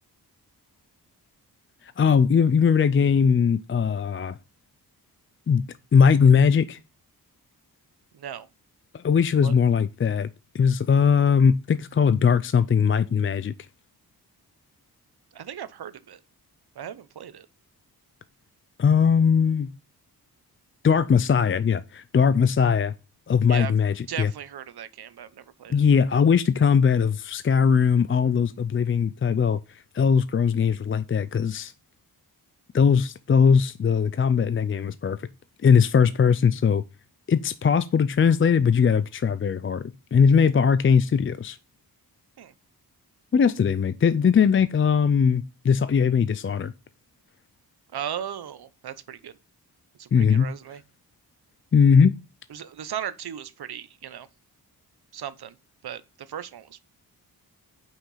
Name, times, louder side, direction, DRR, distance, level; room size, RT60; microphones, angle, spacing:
voice 1, 1.8-4.4 5.5-6.8 8.9-10.3 10.5-13.5 18.8-19.7 20.8-22.9 23.3-24.3 25.7-31.7 32.7-35.3 35.6-36.8 37.3-39.8 40.1-41.6 43.3-46.7 50.1-50.5 51.7-52.1, left 6 dB, 35° left, 0.4 m, -20 dB
voice 2, 8.1-8.5 9.4-9.5 15.3-16.2 16.8-17.5 23.5-23.7 24.1-25.8 42.4-42.5 47.9-49.3 50.0-50.8 52.5-54.3 55.1-55.5 55.8-56.8, right 9 dB, 80° right, 0.9 m, -37 dB
8.9 x 5.8 x 5.6 m
wide cardioid pair, 145°, 38 cm